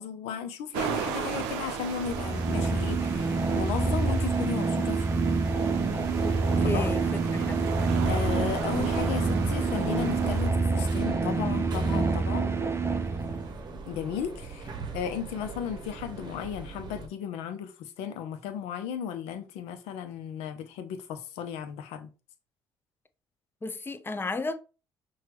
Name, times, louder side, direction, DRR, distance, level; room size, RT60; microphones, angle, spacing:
voice 1, 0.0-5.1 6.6-6.9 8.0-12.5 13.9-22.1, left 8 dB, 65° left, 0.6 m, -35 dB
sound 1, 0.7-10.5, right 6 dB, 70° right, 0.6 m, -36 dB
sound 2, 2.0-13.6, right 4 dB, 25° right, 0.5 m, -27 dB
voice 2, 6.2-7.7 23.6-24.5, left 3 dB, 20° left, 0.5 m, -34 dB
sound 3, 8.1-17.1, right 3 dB, 40° right, 0.9 m, -41 dB
5.8 x 2.3 x 3.0 m
hypercardioid pair, 50°, 11 cm